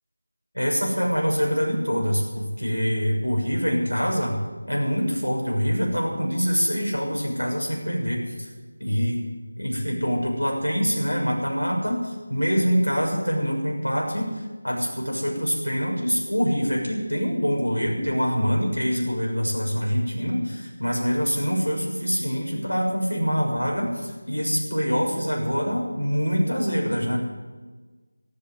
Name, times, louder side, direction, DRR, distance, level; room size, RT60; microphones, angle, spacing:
voice 1, 0.5-4.4 4.7-8.5 8.8-9.2 9.6-27.2, equal, 90° left, -1 dB, 6.6 m, -25 dB
13.5 x 12.5 x 8.2 m, 1.3 s
figure-of-eight pair, 165°, 0 cm